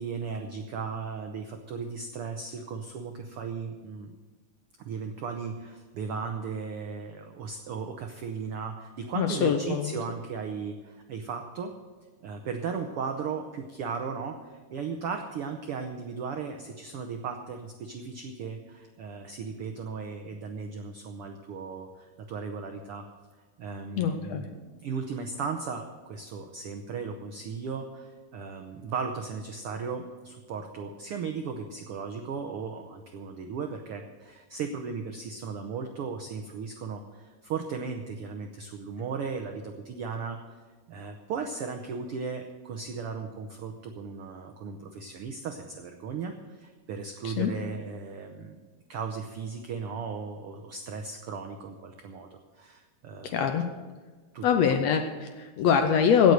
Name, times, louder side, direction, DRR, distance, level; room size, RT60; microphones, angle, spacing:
voice 1, 0.0-4.1 4.8-11.7 12.2-23.1 23.6-40.6 40.9-48.6 48.9-53.4 54.3-54.7, right 5 dB, 85° right, 5 dB, 1.2 m, -36 dB
voice 2, 9.2-10.0 24.0-24.5 47.2-47.5 53.2-53.6 54.4-56.3, left 7 dB, 75° left, 6 dB, 1.7 m, -24 dB
17.0 x 6.7 x 8.0 m, 1.3 s
omnidirectional pair, 3.7 m